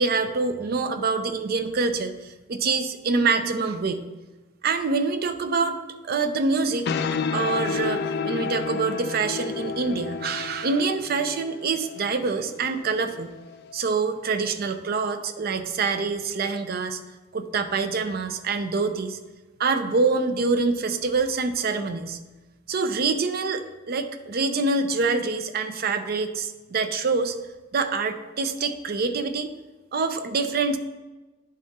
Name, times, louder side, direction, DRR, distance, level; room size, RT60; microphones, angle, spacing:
voice 1, 0.0-4.0 4.6-5.8 6.0-6.9 7.3-13.3 13.7-17.0 17.3-19.2 19.6-22.2 22.7-27.4 27.7-29.5 29.9-30.8, right 4 dB, 50° right, 8 dB, 0.5 m, -25 dB
sound 1, 6.6-13.7, left 5 dB, 60° left, 0.3 m, -31 dB
10.5 x 3.6 x 4.1 m, 1.2 s
head